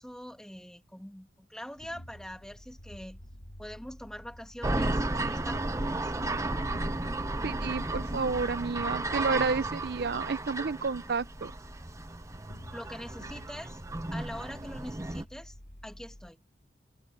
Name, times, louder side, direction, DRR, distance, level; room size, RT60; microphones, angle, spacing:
voice 1, 0.0-3.2 3.6-6.1 12.7-13.8 14.1-15.6 15.8-16.4, equal, 5° left, 1.7 m, -44 dB
sound 1, 1.8-16.3, equal, 70° left, 2.9 m, -51 dB
sound 2, 4.6-15.2, right 2 dB, 15° right, 0.8 m, -33 dB
voice 2, 7.4-11.5, right 4 dB, 55° right, 0.5 m, -31 dB
head